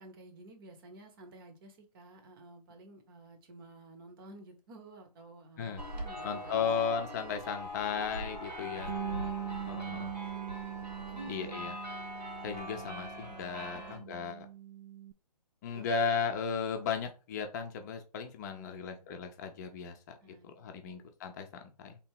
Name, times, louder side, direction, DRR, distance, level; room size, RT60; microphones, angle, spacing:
voice 1, 0.0-6.8 8.6-10.1 11.1-11.6 13.7-14.1 15.7-15.9 18.4-19.0 20.2-21.0, right 2 dB, 35° right, 6 dB, 1.0 m, -52 dB
sound 1, 5.8-14.0, left 1 dB, 90° right, 2.0 m, -42 dB
voice 2, 6.2-8.9 9.7-10.1 11.3-11.7 12.4-14.5 15.6-22.0, left 6 dB, 25° left, 6 dB, 0.6 m, -35 dB
Bass guitar, 8.9-15.1, right 13 dB, 65° right, 0.5 m, -42 dB
3.4 x 2.8 x 4.5 m, 0.33 s
figure-of-eight pair, 140°, 21 cm